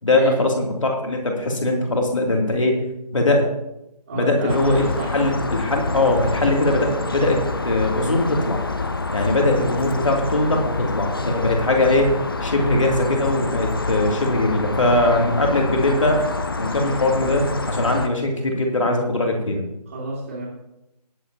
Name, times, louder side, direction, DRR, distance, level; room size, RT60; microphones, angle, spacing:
voice 1, 0.0-2.8 3.1-3.5 4.1-4.8 5.1-8.6 9.1-12.1 12.4-16.3 16.6-19.6, left 2 dB, 50° left, 1 dB, 2.8 m, -21 dB
voice 2, 4.1-5.2 19.9-20.5, right 2 dB, 25° right, -7 dB, 2.6 m, -29 dB
sound 1, 4.5-18.1, left 3 dB, 35° left, 0.7 m, -27 dB
21.0 x 7.9 x 2.9 m, 0.88 s
figure-of-eight pair, 160°, 21 cm